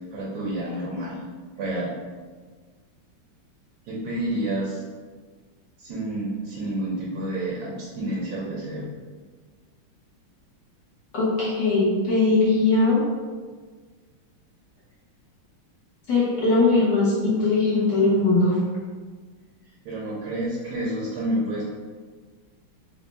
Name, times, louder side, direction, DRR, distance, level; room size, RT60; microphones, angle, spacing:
voice 1, 0.1-1.2 1.6-1.9 3.9-4.8 5.8-8.9 19.8-21.6, right 1 dB, 65° right, -5 dB, 1.3 m, -29 dB
voice 2, 11.1-13.0 16.1-18.6, left 3 dB, 60° left, -7 dB, 1.4 m, -20 dB
4.3 x 2.0 x 4.0 m, 1.5 s
omnidirectional pair, 2.4 m